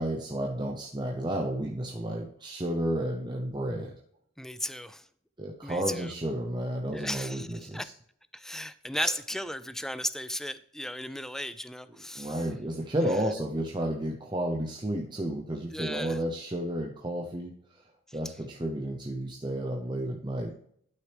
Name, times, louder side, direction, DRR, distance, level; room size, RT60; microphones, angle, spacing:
voice 1, 0.0-3.9 5.4-7.9 9.0-9.1 12.1-17.8 18.1-20.6, right 1 dB, 25° right, 0.8 m, -32 dB
voice 2, 4.4-5.1 5.6-6.1 6.9-7.9 8.3-12.5 15.7-16.2, left 1 dB, ahead, 0.3 m, -35 dB
11.5 x 6.2 x 3.4 m
head